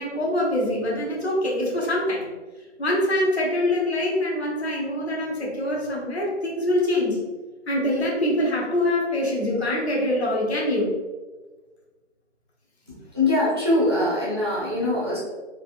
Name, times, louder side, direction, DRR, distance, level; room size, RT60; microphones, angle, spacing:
voice 1, 0.0-2.3 2.8-7.2 7.7-10.9, left 1 dB, 60° left, -2 dB, 1.0 m, -24 dB
voice 2, 12.9-15.2, left 1 dB, 25° right, -8 dB, 0.4 m, -23 dB
3.3 x 2.6 x 2.5 m, 1.3 s
figure-of-eight pair, 145°, 36 cm